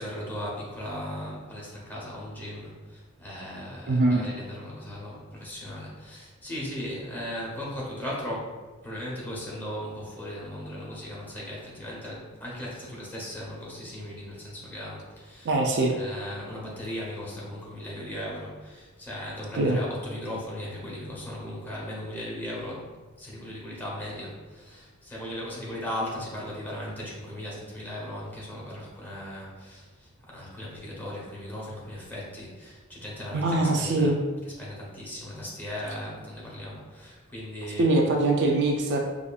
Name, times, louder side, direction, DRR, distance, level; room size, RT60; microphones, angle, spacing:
voice 1, 0.0-8.6 8.8-15.6 15.9-22.9 23.2-37.9, left 1 dB, 10° left, -6 dB, 0.9 m, -37 dB
voice 2, 3.9-4.2 15.4-15.9 19.5-19.8 33.3-34.2 37.8-39.0, right 2 dB, 55° right, 1 dB, 0.4 m, -23 dB
4.9 x 2.4 x 2.3 m, 1.3 s
head